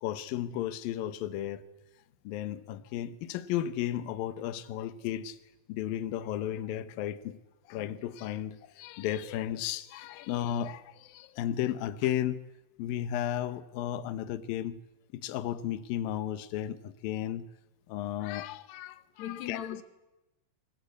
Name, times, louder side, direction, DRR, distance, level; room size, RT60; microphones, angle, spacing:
voice 1, 0.0-1.6 2.2-5.4 5.7-7.4 7.7-12.4 12.8-14.8 15.1-17.5 17.9-19.6, left 11 dB, 90° left, 2.0 m, -34 dB
voice 2, 8.7-9.2 10.1-10.2 19.2-19.8, left 11 dB, 75° left, 1.6 m, -40 dB
25.5 x 22.0 x 8.4 m
omnidirectional pair, 5.6 m